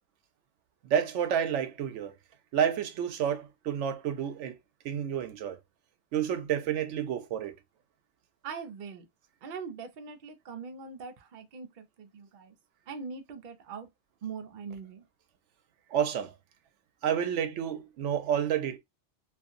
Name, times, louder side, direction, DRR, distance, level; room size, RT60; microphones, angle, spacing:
voice 1, 0.8-2.1 2.5-4.6 4.8-5.6 6.1-7.5 15.9-16.3 17.0-18.8, right 9 dB, 90° right, 0.9 m, -29 dB
voice 2, 8.4-9.1 9.4-12.5 12.9-13.9 14.2-15.1, right 5 dB, 55° right, 0.6 m, -42 dB
2.7 x 2.4 x 2.4 m
omnidirectional pair, 1.2 m